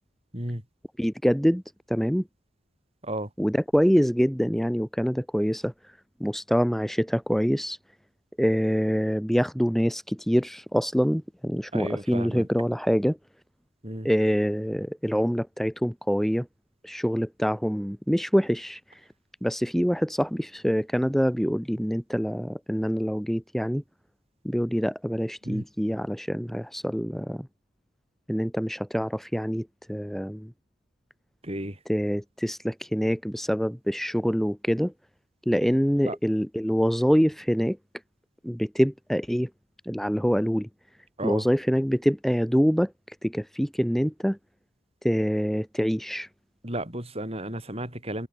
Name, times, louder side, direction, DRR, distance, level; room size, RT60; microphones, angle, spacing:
voice 1, 1.0-1.6 1.9-2.3 3.4-5.7 6.2-7.8 8.4-13.2 14.0-16.5 16.8-19.0 19.4-23.8 24.4-27.5 28.3-30.5 31.9-34.9 35.5-37.8 38.4-39.5 39.9-40.7 41.2-44.4 45.0-46.3, equal, ahead, 3.8 m, -25 dB
voice 2, 11.7-12.5 13.8-14.1 25.4-25.6 31.4-31.8 36.0-36.2 41.2-41.5 46.6-48.3, right 1 dB, 30° right, 5.6 m, -33 dB
head